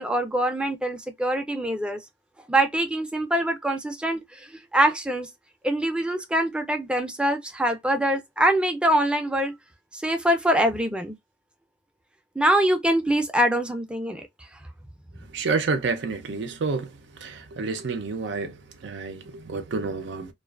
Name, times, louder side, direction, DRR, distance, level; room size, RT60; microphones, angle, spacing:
voice 1, 0.0-2.0 2.5-5.3 5.6-9.5 9.9-11.1 12.4-14.2, right 1 dB, 5° right, 0.4 m, -24 dB
voice 2, 15.3-20.3, right 4 dB, 90° right, 0.5 m, -29 dB
2.4 x 2.3 x 2.3 m
head